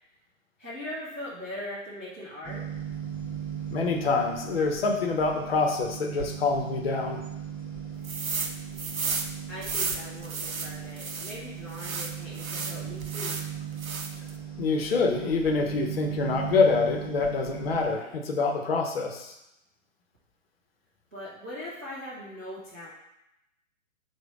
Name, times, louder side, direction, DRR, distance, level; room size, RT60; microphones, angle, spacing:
voice 1, 0.6-2.6 9.5-13.4 21.1-22.9, left 1 dB, 10° right, -12 dB, 0.3 m, -40 dB
sound 1, 2.4-18.0, right 8 dB, 10° left, 1.3 m, -38 dB
voice 2, 3.7-7.2 14.6-19.3, left 4 dB, 45° left, 3 dB, 0.7 m, -26 dB
sound 2, 8.0-8.5 8.8-11.4 11.7-13.5 13.8-14.3, right 4 dB, 90° right, 0.6 m, -33 dB
4.8 x 2.2 x 4.8 m, 0.87 s
figure-of-eight pair, 120°, 41 cm